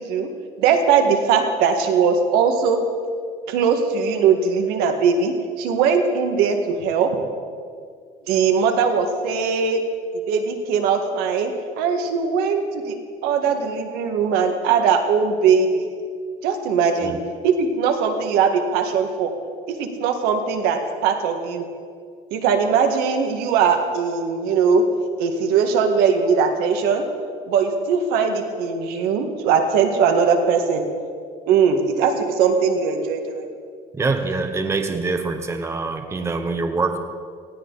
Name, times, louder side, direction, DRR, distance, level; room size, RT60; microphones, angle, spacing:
voice 1, 0.6-2.8 3.5-7.2 8.3-9.8 10.3-11.5 11.8-13.0 13.2-15.9 16.4-17.1 17.4-19.3 19.7-21.7 22.3-24.9 25.2-27.0 27.5-30.8 31.5-33.5, right 6 dB, 85° right, 5 dB, 1.9 m, -20 dB
voice 2, 33.9-37.0, right 3 dB, 15° right, 7 dB, 1.0 m, -24 dB
19.0 x 16.0 x 4.1 m, 2.1 s
cardioid pair, 140°, 16 cm